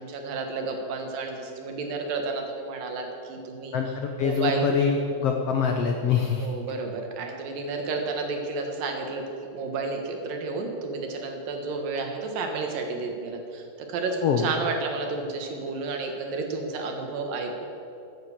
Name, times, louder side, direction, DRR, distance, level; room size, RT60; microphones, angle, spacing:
voice 1, 0.0-3.7 4.2-4.8 6.4-17.7, right 3 dB, 80° right, 3 dB, 3.2 m, -31 dB
voice 2, 3.7-6.5 14.2-14.5, left 6 dB, 80° left, 3 dB, 1.4 m, -24 dB
14.0 x 9.4 x 7.3 m, 2.7 s
omnidirectional pair, 3.9 m